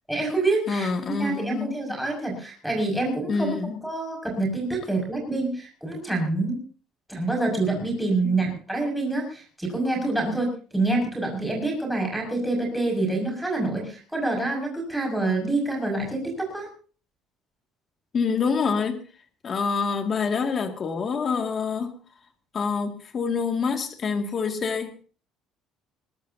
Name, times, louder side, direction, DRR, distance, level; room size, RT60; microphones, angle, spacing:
voice 1, 0.1-0.9 1.2-3.5 3.8-6.6 7.1-10.5 10.7-16.7, right 2 dB, ahead, -2 dB, 6.1 m, -26 dB
voice 2, 0.7-1.7 3.3-3.8 8.2-8.4 18.1-19.0 19.4-22.0 22.5-25.0, left 5 dB, 30° left, 6 dB, 2.3 m, -26 dB
21.5 x 19.0 x 2.8 m, 0.39 s
cardioid pair, 170°, 0 cm